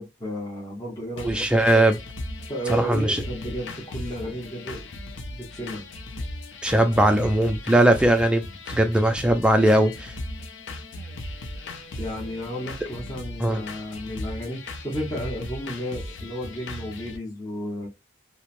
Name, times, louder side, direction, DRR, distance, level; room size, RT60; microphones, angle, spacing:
voice 1, 0.0-1.5 1.7-1.9 2.5-4.9 5.3-5.8 6.9-7.2 12.0-17.9, equal, 20° left, 0.8 m, -33 dB
sound 1, 1.2-17.2, left 1 dB, 70° left, 0.5 m, -37 dB
voice 2, 1.2-2.0 2.7-3.2 6.6-10.1 13.4-13.6, right 1 dB, 5° right, 0.3 m, -20 dB
3.0 x 2.0 x 2.5 m
head